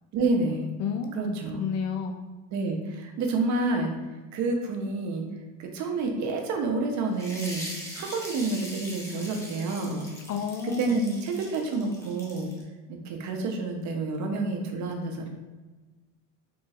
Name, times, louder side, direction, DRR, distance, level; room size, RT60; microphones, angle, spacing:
voice 1, 0.1-0.7 1.1-1.6 2.5-3.9 4.3-5.3 5.6-7.7 7.9-10.1 10.6-12.5 12.9-15.4, right 3 dB, 50° right, 3 dB, 0.7 m, -29 dB
voice 2, 0.8-2.2 10.3-11.0, left 6 dB, 45° left, 5 dB, 0.4 m, -31 dB
sound 1, 7.1-12.6, equal, 10° left, 0.9 m, -41 dB
4.1 x 2.9 x 2.4 m, 1.3 s
supercardioid pair, 110°, 36 cm